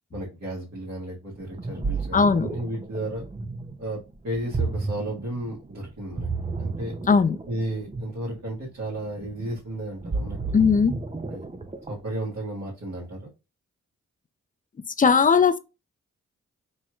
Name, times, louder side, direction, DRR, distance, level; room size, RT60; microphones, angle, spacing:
voice 1, 0.1-3.2 3.8-6.3 6.6-6.9 7.5-10.4 11.3-11.4 11.9-13.3, right 1 dB, 60° right, 1.7 m, -33 dB
Ocean, 1.4-12.2, right 3 dB, 20° right, 0.6 m, -32 dB
voice 2, 2.1-2.5 7.1-7.4 10.5-10.9 15.0-15.6, left 5 dB, 25° left, 0.5 m, -18 dB
4.2 x 3.0 x 2.4 m
cardioid pair, 45°, 32 cm